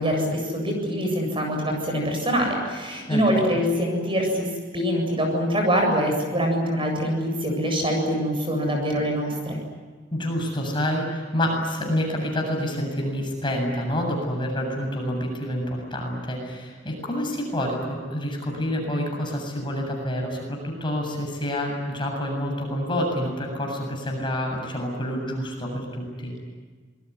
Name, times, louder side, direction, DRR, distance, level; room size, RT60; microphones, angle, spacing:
voice 1, 0.0-9.6, equal, 30° right, 2 dB, 7.8 m, -24 dB
voice 2, 3.1-3.4 10.1-26.3, equal, 25° left, 1 dB, 7.6 m, -28 dB
27.0 x 22.0 x 9.6 m, 1.5 s
head